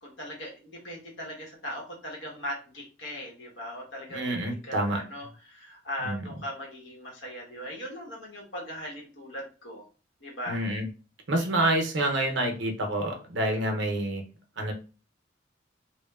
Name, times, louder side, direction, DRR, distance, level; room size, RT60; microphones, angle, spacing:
voice 1, 0.0-4.3 4.6-9.8 10.2-10.6 11.3-11.5, equal, 70° left, -1 dB, 0.9 m, -39 dB
voice 2, 4.1-5.0 6.0-6.4 10.5-10.8 11.3-14.2 14.6-14.7, right 1 dB, 65° right, 3 dB, 0.6 m, -28 dB
2.9 x 2.0 x 2.2 m, 0.35 s
head